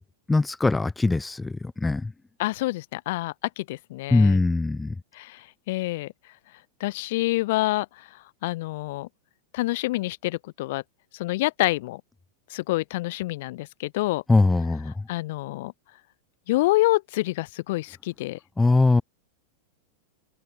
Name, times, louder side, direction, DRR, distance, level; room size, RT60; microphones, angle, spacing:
voice 1, 0.3-2.1 4.1-4.9 14.3-15.1 18.6-19.0, left 3 dB, 10° left, 1.4 m, -21 dB
voice 2, 2.4-4.4 5.1-6.1 6.8-9.1 9.5-10.8 11.1-12.0 12.5-14.2 15.1-15.7 16.5-18.4, left 19 dB, 50° left, 3.7 m, -27 dB
open air
figure-of-eight pair, 90°, 0 cm